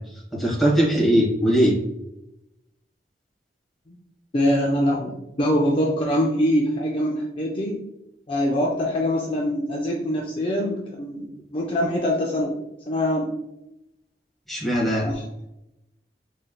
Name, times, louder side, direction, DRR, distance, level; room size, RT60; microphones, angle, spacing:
voice 1, 0.3-1.7 14.5-15.1, equal, ahead, -5 dB, 1.2 m, -20 dB
voice 2, 4.3-5.1 5.4-7.8 8.3-12.5 12.9-13.3 15.0-15.2, equal, 30° left, -1 dB, 0.4 m, -23 dB
4.1 x 3.4 x 2.2 m, 0.88 s
head